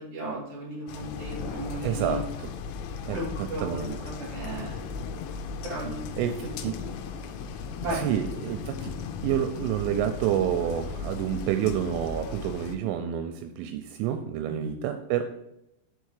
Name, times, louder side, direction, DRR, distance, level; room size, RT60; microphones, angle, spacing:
voice 1, 0.0-2.2 3.1-4.9 5.6-6.0 6.4-6.5 7.8-8.1 14.5-14.7, right 1 dB, 35° right, -5 dB, 2.9 m, -35 dB
sound 1, 0.9-12.8, left 5 dB, 85° left, 2.9 m, -37 dB
voice 2, 1.8-2.5 3.0-4.0 6.2-6.8 7.9-8.9 9.2-15.2, right 10 dB, 85° right, 6 dB, 3.0 m, -29 dB
6.7 x 4.5 x 4.8 m, 0.85 s
omnidirectional pair, 5.8 m